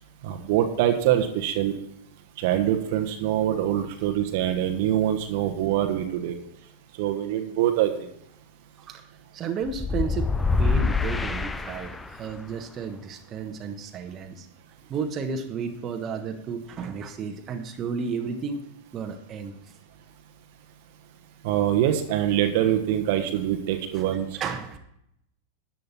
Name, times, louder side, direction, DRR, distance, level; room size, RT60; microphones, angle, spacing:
voice 1, 0.2-1.7 2.4-6.4 7.0-8.1 21.4-24.3, right 11 dB, 50° right, 6 dB, 1.2 m, -24 dB
voice 2, 9.3-14.5 14.9-18.7 18.9-19.6 23.9-24.8, right 5 dB, 30° right, 5 dB, 1.2 m, -33 dB
sound 1, 9.7-12.3, left 4 dB, 10° left, 0.7 m, -25 dB
13.5 x 9.4 x 4.2 m, 0.76 s
figure-of-eight pair, 90°, 0 cm